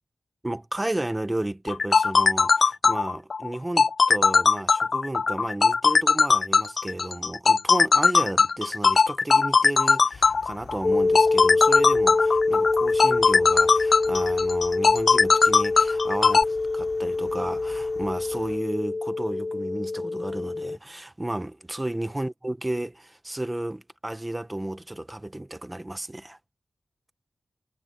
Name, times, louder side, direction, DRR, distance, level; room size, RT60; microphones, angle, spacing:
voice 1, 0.4-26.4, right 1 dB, 15° right, 1.0 m, -33 dB
sound 1, 1.7-16.4, left 5 dB, 50° left, 0.4 m, -19 dB
sound 2, 10.1-18.6, left 6 dB, 85° left, 4.2 m, -48 dB
sound 3, 10.8-20.8, left 3 dB, 30° left, 0.9 m, -25 dB
wide cardioid pair, 145°, 0 cm